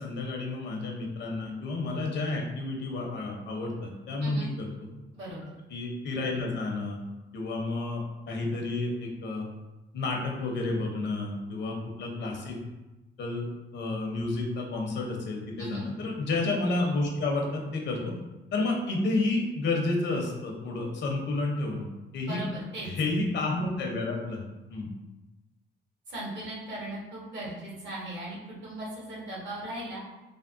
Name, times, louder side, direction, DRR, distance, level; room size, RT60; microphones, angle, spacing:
voice 1, 0.0-4.7 5.7-7.0 7.3-8.0 8.3-9.4 9.9-12.6 13.2-13.5 13.7-18.1 18.5-21.9 22.1-22.4 22.8-24.9, left 2 dB, 65° left, 0 dB, 0.7 m, -30 dB
voice 2, 22.2-22.9 26.1-30.0, right 1 dB, 65° right, -6 dB, 1.3 m, -38 dB
3.4 x 2.1 x 2.5 m, 1.0 s
cardioid pair, 90°, 20 cm